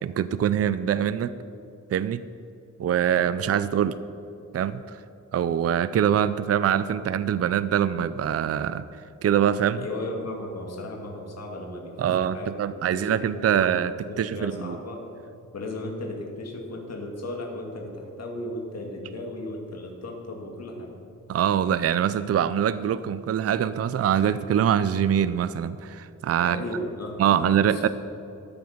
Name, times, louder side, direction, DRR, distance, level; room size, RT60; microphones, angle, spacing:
voice 1, 0.0-1.3 1.9-2.2 2.8-4.0 4.5-5.0 5.3-8.8 9.2-9.8 12.0-14.8 21.3-26.6 27.2-27.9, right 9 dB, 50° right, 14 dB, 0.4 m, -24 dB
voice 2, 9.8-13.8 14.1-15.0 15.5-20.9 26.4-27.8, left 1 dB, 55° left, 0 dB, 2.2 m, -36 dB
13.5 x 9.4 x 7.1 m, 2.7 s
wide cardioid pair, 160°, 31 cm